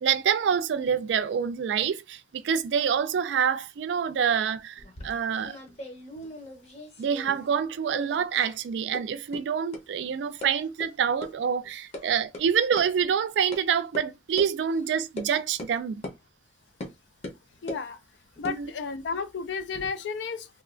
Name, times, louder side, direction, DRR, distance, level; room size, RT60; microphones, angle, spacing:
voice 1, 0.0-5.6 7.0-16.0 18.4-18.7, right 7 dB, 75° right, 0.3 m, -26 dB
sound 1, 4.8-7.6 7.8-8.6 8.9-9.0 9.3-9.4 9.7-9.8 10.4-10.5 10.8-10.9 11.2-11.3 11.6-12.0 12.3-12.4 12.8-12.9 13.5-13.6 13.9-14.0 14.4-14.5 15.2-15.3 15.6-15.7 16.0-16.2 16.8-16.9 17.2-17.8 18.3-19.9, left 1 dB, 35° left, 0.7 m, -40 dB
voice 2, 17.6-18.0 18.4-20.5, left 5 dB, 80° left, 0.4 m, -32 dB
3.0 x 2.2 x 2.4 m
head